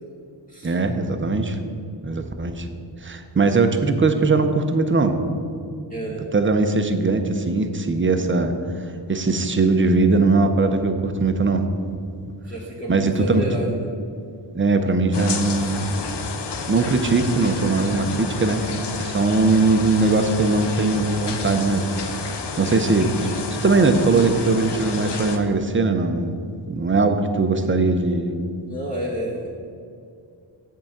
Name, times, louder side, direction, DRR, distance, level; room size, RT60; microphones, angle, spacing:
voice 1, 0.6-1.6 2.0-2.7 3.0-5.1 6.3-8.5 9.1-11.6 12.9-13.5 14.5-15.8 16.7-18.6 19.0-21.9 22.2-23.1 23.6-26.4 26.7-28.3, right 3 dB, 25° right, 7 dB, 0.6 m, -20 dB
voice 2, 5.9-6.3 12.4-13.9 15.5-15.8 28.7-29.5, equal, 15° left, -5 dB, 1.1 m, -30 dB
sound 1, 15.1-25.4, left 4 dB, 60° left, 0.8 m, -30 dB
7.8 x 4.7 x 7.2 m, 2.4 s
wide cardioid pair, 140°, 46 cm